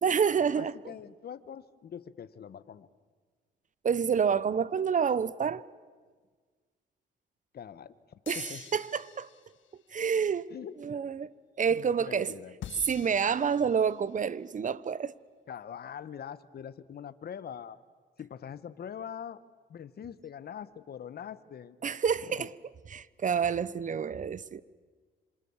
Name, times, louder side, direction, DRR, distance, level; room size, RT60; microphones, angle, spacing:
voice 1, 0.0-0.9 3.8-5.6 8.3-9.3 9.9-10.5 10.8-12.3 12.8-15.1 21.8-22.5 22.9-24.6, right 7 dB, 40° right, 1.0 m, -28 dB
voice 2, 0.6-2.9 7.5-7.9 8.3-8.6 10.5-10.8 11.7-12.5 15.5-17.8 18.2-19.4 19.7-21.8 22.3-22.5, left 8 dB, 50° left, 1.3 m, -43 dB
sound 1, 8.2-9.8 12.6-14.2, left 10 dB, 75° left, 1.7 m, -47 dB
27.0 x 26.5 x 7.3 m
cardioid pair, 90°, 20 cm